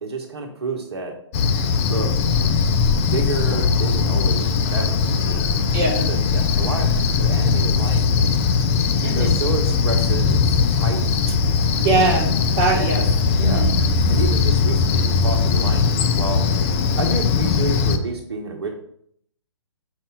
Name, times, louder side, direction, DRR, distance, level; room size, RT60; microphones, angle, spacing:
voice 1, 0.0-1.1 1.9-2.1 3.1-5.6 6.1-6.9 7.2-8.4 9.1-11.0 12.8-13.1 13.4-13.7 14.1-16.5 17.0-18.7, right 3 dB, 55° right, 2 dB, 1.0 m, -30 dB
Cricket, 1.3-18.0, left 5 dB, 25° left, 0.5 m, -19 dB
voice 2, 5.7-6.1 9.0-9.4 11.8-13.0 13.4-13.7, right 3 dB, 30° right, 1 dB, 1.3 m, -22 dB
5.5 x 4.6 x 4.7 m, 0.66 s
figure-of-eight pair, 130°, 16 cm